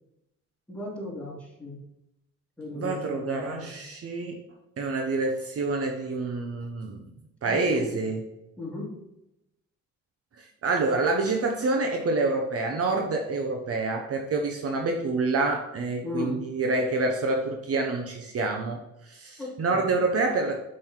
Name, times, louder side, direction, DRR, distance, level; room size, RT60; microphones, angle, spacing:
voice 1, 0.7-1.8 2.6-3.8 7.5-8.1 8.6-8.9 16.0-16.5 19.4-19.9, left 2 dB, 5° left, -5 dB, 2.7 m, -36 dB
voice 2, 2.7-4.4 4.8-7.0 7.4-8.2 10.4-20.6, right 3 dB, 50° right, 3 dB, 1.0 m, -27 dB
5.5 x 5.4 x 4.5 m, 0.88 s
cardioid pair, 90°, 30 cm